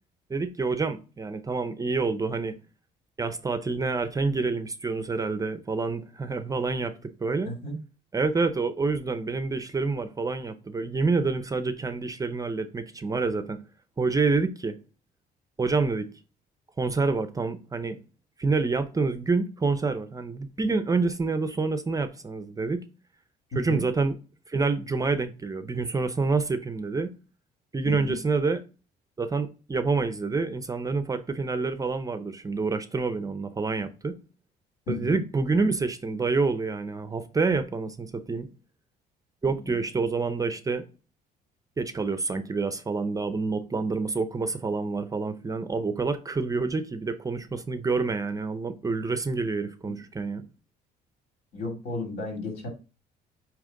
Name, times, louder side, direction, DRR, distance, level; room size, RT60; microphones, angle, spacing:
voice 1, 0.3-2.6 3.2-7.5 8.1-13.6 14.0-14.8 15.6-16.1 16.8-18.0 18.4-22.8 23.5-24.2 24.5-27.1 27.7-28.6 29.2-34.2 34.9-38.5 39.4-40.8 41.8-50.4, right 4 dB, 20° right, 0.6 m, -27 dB
voice 2, 7.4-7.8 23.5-23.8 27.8-28.2 34.9-35.2 39.5-39.8 49.9-50.0 51.5-52.7, left 2 dB, 65° left, 2.7 m, -34 dB
8.8 x 2.9 x 3.8 m
cardioid pair, 110°, 17 cm